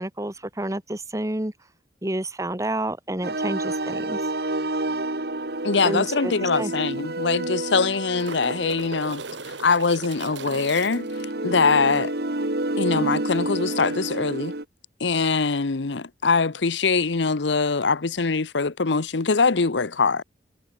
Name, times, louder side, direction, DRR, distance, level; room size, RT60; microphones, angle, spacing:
voice 1, 0.0-1.5 2.0-4.2 5.8-6.7, right 1 dB, 15° right, 1.3 m, -29 dB
sound 1, 3.2-14.6, right 2 dB, 60° right, 2.1 m, -29 dB
voice 2, 5.6-9.2 9.6-11.1 11.4-12.1 12.8-14.5 15.0-20.2, left 4 dB, 80° left, 0.9 m, -23 dB
sound 2, 6.0-6.1 6.4-6.5 7.5-11.2 13.8-13.9, right 3 dB, 85° right, 2.6 m, -38 dB
head